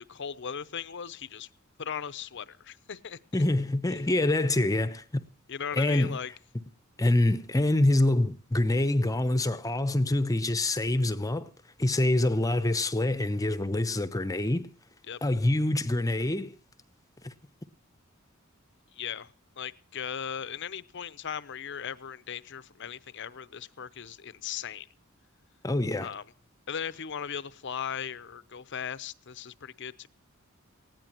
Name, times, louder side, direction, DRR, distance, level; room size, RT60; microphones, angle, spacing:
voice 1, 0.0-1.5 1.8-3.2 3.9-4.0 5.5-6.3 15.1-15.2 18.9-24.9 26.0-26.2 26.7-30.1, left 7 dB, 55° left, 0.7 m, -38 dB
voice 2, 3.3-5.2 5.7-6.2 7.0-11.5 11.8-14.7 15.2-16.5 17.2-17.3 25.6-26.1, left 1 dB, 15° left, 0.8 m, -26 dB
19.5 x 16.0 x 3.0 m
head